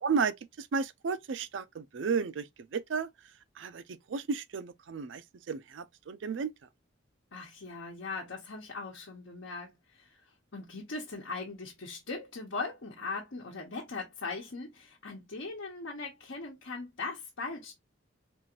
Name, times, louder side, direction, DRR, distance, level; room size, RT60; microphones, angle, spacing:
voice 1, 0.0-2.5 2.7-3.1 3.6-5.2 5.5-6.5, right 5 dB, 70° right, 0.4 m, -33 dB
voice 2, 7.3-10.2 10.5-17.7, left 3 dB, 85° left, 0.9 m, -40 dB
4.3 x 2.5 x 2.8 m
head